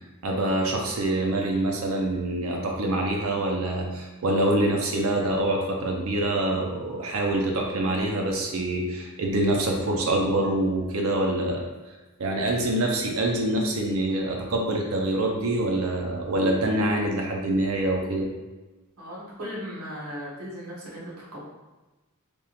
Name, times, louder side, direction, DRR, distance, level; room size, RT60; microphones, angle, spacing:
voice 1, 0.2-11.7 12.2-18.3, right 1 dB, 70° right, 0 dB, 0.5 m, -25 dB
voice 2, 19.0-21.4, equal, 90° right, -6 dB, 1.3 m, -37 dB
3.5 x 2.9 x 2.9 m, 1.2 s
head